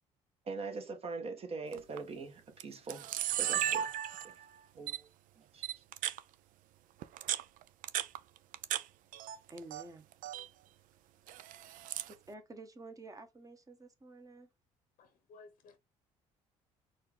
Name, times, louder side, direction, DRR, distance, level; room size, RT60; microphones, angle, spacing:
voice 1, 0.4-3.9 4.2-4.4 4.8-5.1 5.4-5.7, right 4 dB, 40° right, 1.3 m, -42 dB
Camera, 1.7-2.0 2.6-2.7 2.9-4.4 4.9-5.0 5.6-6.2 7.0-8.8 9.1-9.8 10.1-10.5 11.3-12.1, right 11 dB, 65° right, 0.5 m, -35 dB
voice 2, 9.5-10.1 11.6-11.8 12.1-14.5, right 2 dB, 25° right, 1.2 m, -51 dB
voice 3, 15.0-15.8, left 3 dB, 65° left, 0.9 m, -57 dB
4.2 x 2.5 x 3.5 m
supercardioid pair, 70°, 15 cm